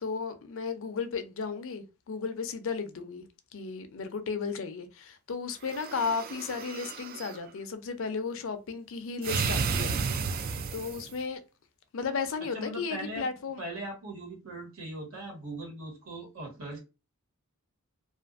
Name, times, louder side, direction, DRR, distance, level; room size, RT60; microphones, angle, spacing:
voice 1, 0.0-3.3 3.5-10.0 10.7-11.4 11.9-13.6, left 5 dB, 65° left, 0.5 m, -34 dB
sound 1, 5.6-7.4 9.2-11.2, right 5 dB, 45° right, 0.3 m, -32 dB
voice 2, 12.5-13.2 13.6-16.8, right 1 dB, 70° right, 1.3 m, -39 dB
2.5 x 2.4 x 2.4 m
head